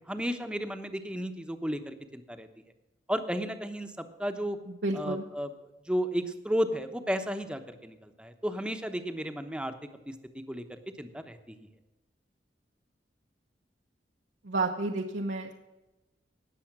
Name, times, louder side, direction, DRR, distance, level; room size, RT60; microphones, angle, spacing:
voice 1, 0.1-2.5 3.1-3.9 4.2-4.6 4.9-5.5 5.9-9.7 10.1-10.2 10.5-11.6, equal, 5° right, 7 dB, 0.9 m, -33 dB
voice 2, 4.7-5.2 14.4-15.5, right 2 dB, 80° right, 0 dB, 1.0 m, -31 dB
19.0 x 7.1 x 6.0 m, 1.0 s
head